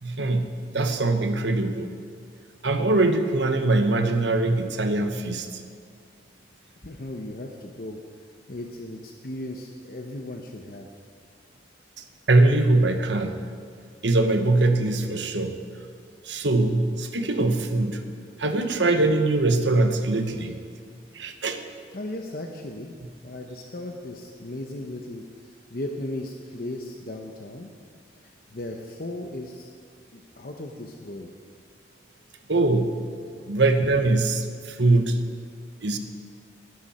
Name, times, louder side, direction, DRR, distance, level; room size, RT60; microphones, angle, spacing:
voice 1, 0.0-1.9 2.6-5.6 12.3-13.4 14.0-15.6 16.2-18.0 18.4-20.6 21.1-21.6 32.5-33.0 33.5-35.2 35.8-36.0, right 2 dB, 75° right, 7 dB, 1.2 m, -22 dB
voice 2, 6.8-8.0 8.5-10.9 21.9-22.9 23.2-27.7 28.2-29.7 30.1-31.3 33.3-33.5, left 1 dB, 50° left, 2 dB, 0.9 m, -36 dB
20.0 x 11.5 x 4.3 m, 2.2 s
head